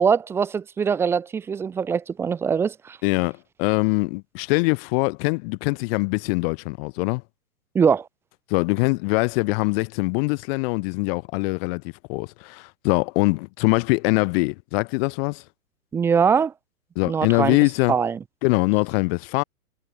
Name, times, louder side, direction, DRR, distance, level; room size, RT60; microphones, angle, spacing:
voice 1, 0.0-3.0 7.7-8.1 15.9-16.5 17.1-17.6 17.9-18.2, right 6 dB, 5° right, 0.5 m, -22 dB
voice 2, 3.0-7.2 8.5-15.4 17.0-17.9 18.4-19.4, left 29 dB, 40° left, 2.7 m, -23 dB
hypercardioid pair, 120°, 45 cm